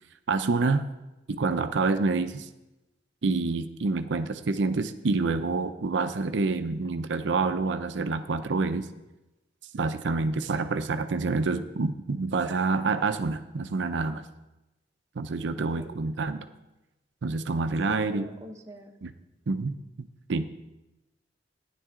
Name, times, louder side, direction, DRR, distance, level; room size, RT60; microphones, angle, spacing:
voice 1, 0.3-0.8 1.3-2.5 3.2-8.9 9.7-14.2 15.2-16.5 17.2-18.3 19.0-19.1 19.5-20.5, right 3 dB, 70° right, 9 dB, 0.5 m, -27 dB
voice 2, 15.6-16.0 17.9-18.9, equal, 15° right, 2 dB, 1.0 m, -43 dB
15.5 x 10.0 x 3.7 m, 1.0 s
head